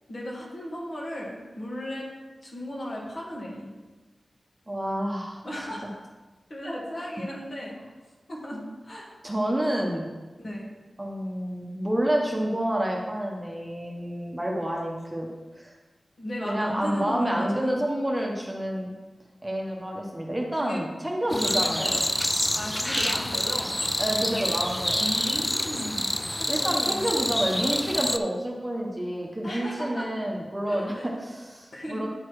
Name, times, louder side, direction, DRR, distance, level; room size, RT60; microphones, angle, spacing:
voice 1, 0.1-2.1 2.4-3.7 5.4-6.0 6.5-7.8 8.3-9.2 10.4-10.7 16.2-17.8 20.6-20.8 21.3-22.0 22.5-23.8 25.0-26.1 26.4-27.0 29.4-30.1 30.7-31.1 31.7-32.1, equal, 50° left, -4 dB, 2.3 m, -35 dB
voice 2, 4.7-5.4 7.0-7.1 9.2-10.1 11.0-15.3 15.5-15.7 16.4-18.9 19.4-21.9 24.0-25.1 26.5-32.1, right 1 dB, 15° right, -1 dB, 1.1 m, -29 dB
sound 1, 21.3-28.2, left 1 dB, 10° left, 0.4 m, -27 dB
9.6 x 4.2 x 4.8 m, 1.2 s
wide cardioid pair, 70°, 0 cm